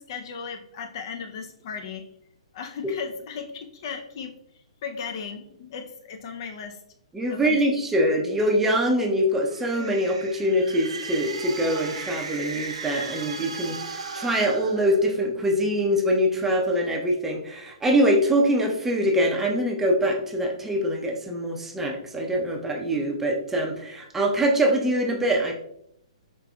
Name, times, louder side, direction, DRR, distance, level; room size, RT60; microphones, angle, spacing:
voice 1, 0.0-2.1 2.5-4.4 4.8-6.8 7.3-7.6, left 6 dB, 45° left, 5 dB, 0.5 m, -36 dB
voice 2, 7.1-25.5, equal, 10° right, 1 dB, 0.6 m, -24 dB
sound 1, 9.4-15.4, right 4 dB, 65° right, 0.7 m, -36 dB
5.0 x 3.3 x 2.3 m, 0.75 s
figure-of-eight pair, 120°, 3 cm